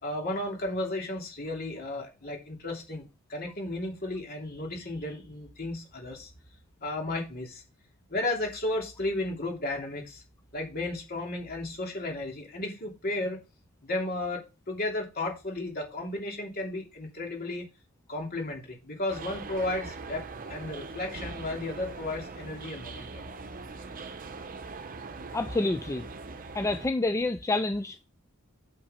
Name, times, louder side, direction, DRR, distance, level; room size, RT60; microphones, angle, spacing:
voice 1, 0.0-3.0 3.3-6.3 6.8-7.6 8.1-10.2 10.5-13.4 13.8-17.7 18.1-23.3, left 2 dB, 45° left, 2.9 m, -34 dB
sound 1, 19.1-26.9, right 3 dB, 40° right, 0.8 m, -41 dB
voice 2, 25.3-26.0 26.5-28.0, left 2 dB, 15° left, 0.4 m, -28 dB
6.6 x 5.8 x 5.1 m
head